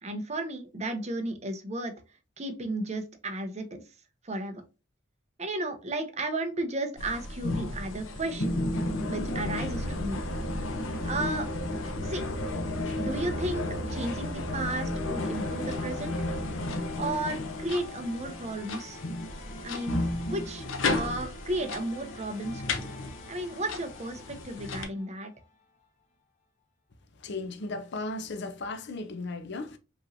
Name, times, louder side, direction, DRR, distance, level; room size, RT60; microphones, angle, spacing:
voice 1, 0.0-1.9 2.4-3.8 4.2-4.6 5.4-8.5 9.1-10.2 11.0-11.5 12.0-12.2 12.9-16.1 16.9-19.0 19.6-20.0 20.3-22.9 23.3-25.3, right 1 dB, 35° right, 0.8 m, -33 dB
sound 1, 7.0-24.8, left 2 dB, 90° left, 0.8 m, -33 dB
sound 2, 15.1-26.0, left 1 dB, 40° left, 1.0 m, -47 dB
voice 2, 27.2-29.8, left 2 dB, 60° left, 0.6 m, -36 dB
5.2 x 3.1 x 2.6 m
head